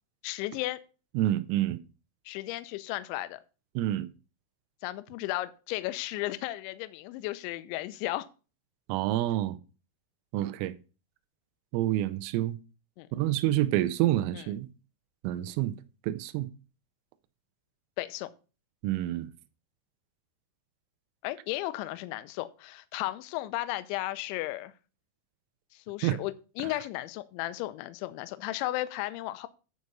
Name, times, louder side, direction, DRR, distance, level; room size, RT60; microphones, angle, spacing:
voice 1, 0.2-0.8 2.3-3.4 4.8-8.3 13.0-13.1 14.3-14.4 18.0-18.3 21.2-24.7 25.7-29.5, left 17 dB, 80° left, 2.7 m, -34 dB
voice 2, 1.1-1.8 3.8-4.1 8.9-9.6 10.3-10.7 11.7-12.6 13.1-14.7 15.2-15.8 16.0-16.5 18.8-19.3 26.0-26.2, right 14 dB, 85° right, 3.3 m, -28 dB
10.5 x 4.8 x 5.3 m
omnidirectional pair, 5.9 m